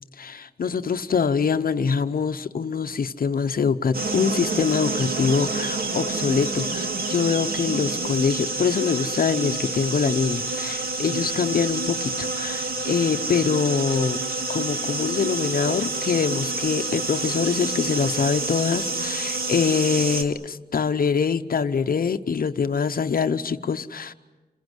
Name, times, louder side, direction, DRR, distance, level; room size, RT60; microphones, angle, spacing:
voice 1, 0.2-14.2 14.5-24.1, left 6 dB, 60° left, 9 dB, 0.8 m, -24 dB
sound 1, 3.9-20.2, right 3 dB, 65° right, 2.2 m, -28 dB
28.0 x 21.5 x 8.0 m, 1.2 s
wide cardioid pair, 115°, 17 cm